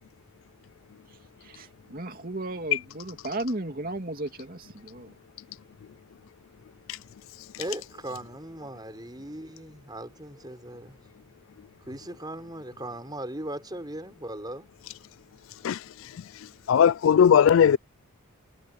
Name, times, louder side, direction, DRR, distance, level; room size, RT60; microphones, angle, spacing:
voice 1, 1.4-5.1, right 2 dB, 40° right, 2.7 m, -35 dB
voice 2, 7.5-11.0 11.9-14.7, right 1 dB, 20° right, 5.6 m, -38 dB
voice 3, 16.7-17.8, left 8 dB, 65° left, 0.3 m, -18 dB
head